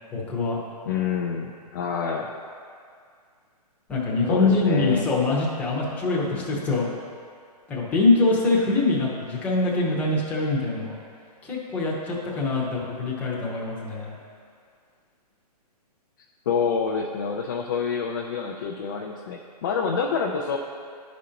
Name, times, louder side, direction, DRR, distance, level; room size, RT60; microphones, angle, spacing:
voice 1, 0.1-0.6 3.9-7.0 7.7-11.0 11.4-14.2, left 3 dB, 5° left, -6 dB, 0.8 m, -24 dB
voice 2, 0.9-2.3 4.3-5.1 16.5-20.6, left 6 dB, 30° left, -1 dB, 0.4 m, -27 dB
11.0 x 5.1 x 2.8 m, 2.2 s
hypercardioid pair, 160°, 21 cm